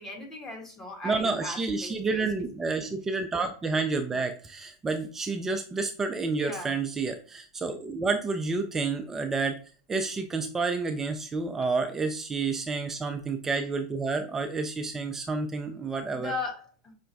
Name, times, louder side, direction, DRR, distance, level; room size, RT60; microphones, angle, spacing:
voice 1, 0.0-2.3 2.7-2.9 6.4-6.7 16.1-16.9, left 2 dB, 20° left, 1 dB, 1.2 m, -38 dB
voice 2, 1.0-9.6 9.9-16.3, right 4 dB, 15° right, 5 dB, 0.4 m, -29 dB
5.5 x 2.1 x 2.6 m, 0.40 s
hypercardioid pair, 105°, 2 cm